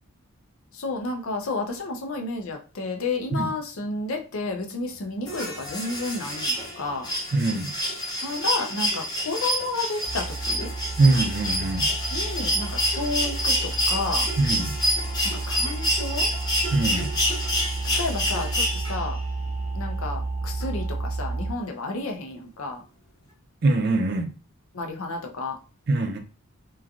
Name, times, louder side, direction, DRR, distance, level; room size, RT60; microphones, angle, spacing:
voice 1, 0.7-7.1 8.2-10.7 12.1-14.3 15.3-16.3 18.0-19.2 19.7-22.8 24.7-25.6, left 3 dB, 70° left, 3 dB, 0.6 m, -31 dB
sound 1, 5.3-19.2 20.6-20.7, equal, 20° left, 0.6 m, -27 dB
voice 2, 7.3-7.7 11.0-11.9 14.4-14.7 16.7-17.1 23.6-24.3 25.9-26.2, right 2 dB, 45° right, 5 dB, 0.4 m, -22 dB
sound 2, 10.0-21.5, right 3 dB, 10° right, 0.8 m, -31 dB
3.1 x 2.3 x 2.4 m, 0.35 s
head